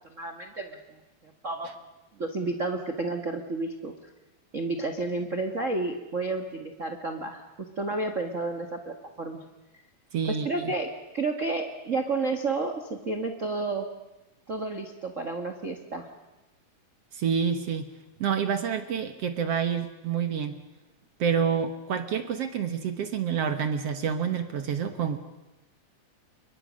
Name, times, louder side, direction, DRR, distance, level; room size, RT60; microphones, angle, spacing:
voice 1, 0.1-1.0 1.2-1.7 2.2-3.9 4.5-7.4 7.8-9.4 10.2-13.9 14.5-16.1, right 3 dB, 35° right, 5 dB, 1.3 m, -31 dB
voice 2, 10.1-10.7 17.1-17.9 18.2-20.6 21.2-25.2, right 7 dB, 60° right, 8 dB, 1.9 m, -28 dB
29.0 x 24.0 x 6.4 m, 1.1 s
omnidirectional pair, 4.0 m